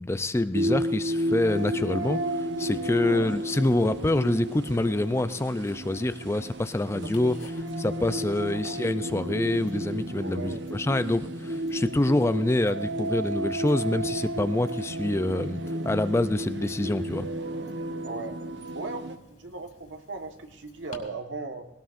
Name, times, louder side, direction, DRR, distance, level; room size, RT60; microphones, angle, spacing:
voice 1, 0.0-7.4 7.8-17.3, left 1 dB, 15° left, 12 dB, 0.4 m, -26 dB
sound 1, 0.5-19.2, right 1 dB, 70° right, 1.0 m, -32 dB
Tick-tock, 1.2-21.0, left 2 dB, 40° left, 2.9 m, -57 dB
voice 2, 3.0-3.3 6.9-7.5 8.2-8.8 10.2-10.6 18.0-18.4 18.7-21.7, right 3 dB, 90° right, 5 dB, 1.4 m, -38 dB
20.0 x 18.5 x 2.5 m, 0.93 s
head